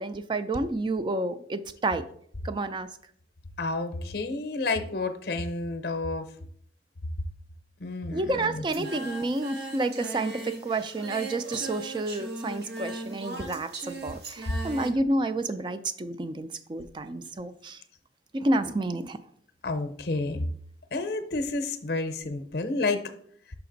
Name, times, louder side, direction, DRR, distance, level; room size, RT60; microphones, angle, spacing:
voice 1, 0.0-2.0 2.4-2.9 8.1-17.8 18.3-19.2, right 2 dB, 25° right, 11 dB, 0.3 m, -30 dB
voice 2, 3.6-6.3 7.8-8.9 14.5-14.6 19.6-20.4 20.9-23.0, left 3 dB, 60° left, 8 dB, 0.6 m, -30 dB
Singing, 8.7-14.9, right 2 dB, 65° right, 0.9 m, -38 dB
5.8 x 5.1 x 3.8 m, 0.63 s
head